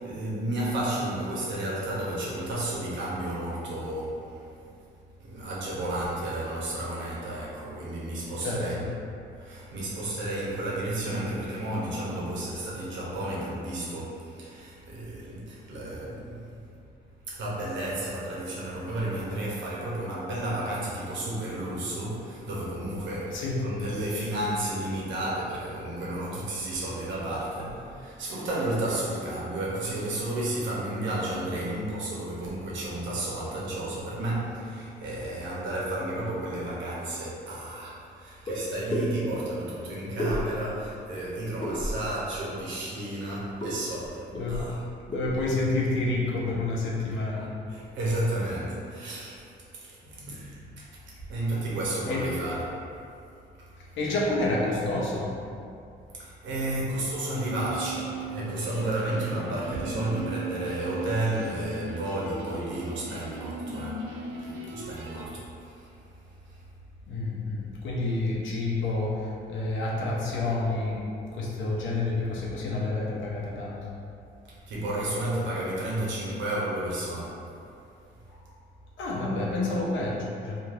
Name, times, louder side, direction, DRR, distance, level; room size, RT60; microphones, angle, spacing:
voice 1, 0.0-4.4 5.2-8.9 9.4-16.6 17.3-44.8 47.1-49.4 49.7-50.8 51.3-52.8 56.2-64.1 64.6-65.9 74.7-77.4, right 1 dB, 70° right, -6 dB, 0.8 m, -32 dB
voice 2, 8.4-8.8 23.3-23.6 44.3-44.6 45.1-47.5 50.2-50.4 52.1-52.2 54.0-55.3 67.1-71.0 71.3-73.8 79.0-80.6, left 2 dB, 75° left, -4 dB, 0.7 m, -29 dB
sound 1, 38.5-38.6 38.9-39.1 40.2-40.8 41.6-42.1 43.6-43.7 44.0-44.1 44.3-44.7 45.1-45.4, equal, 20° left, 0.7 m, -31 dB
sound 2, 57.3-65.3, right 2 dB, 90° right, 0.4 m, -38 dB
3.1 x 2.4 x 2.5 m, 2.5 s
cardioid pair, 90°, 20 cm